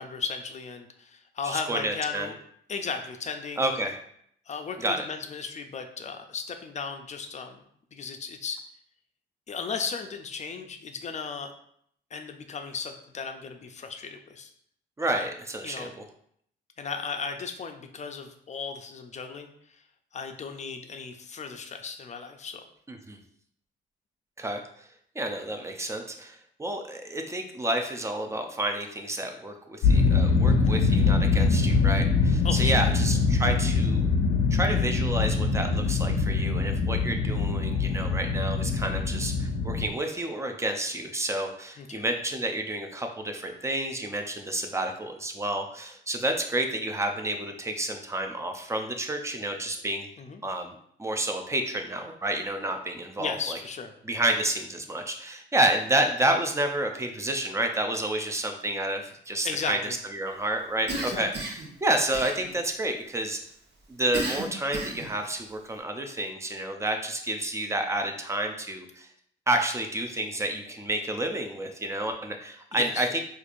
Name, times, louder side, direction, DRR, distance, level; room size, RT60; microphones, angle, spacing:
voice 1, 0.0-2.3 2.7-3.7 4.5-7.6 7.9-8.6 9.5-11.5 12.1-14.5 15.0-15.3 15.6-16.0 16.8-19.5 20.1-22.6 30.6-30.8 32.4-32.9 41.8-42.0 50.2-50.4 53.2-53.9 59.4-60.0 61.0-61.3 72.7-73.2, left 5 dB, 35° left, 6 dB, 0.5 m, -35 dB
voice 2, 1.4-2.3 3.6-4.0 4.8-5.0 15.0-16.0 22.9-23.2 24.4-24.9 25.2-34.1 34.5-50.1 50.4-53.6 54.0-59.8 60.1-63.4 63.9-69.1 69.5-73.2, right 1 dB, 15° right, 4 dB, 0.5 m, -30 dB
sound 1, 29.8-39.9, left 4 dB, 85° left, 0.6 m, -23 dB
Cough, 60.9-61.7 62.1-62.8 64.1-65.1, right 2 dB, 60° right, 1.0 m, -33 dB
4.4 x 2.5 x 2.5 m, 0.67 s
cardioid pair, 90°, 20 cm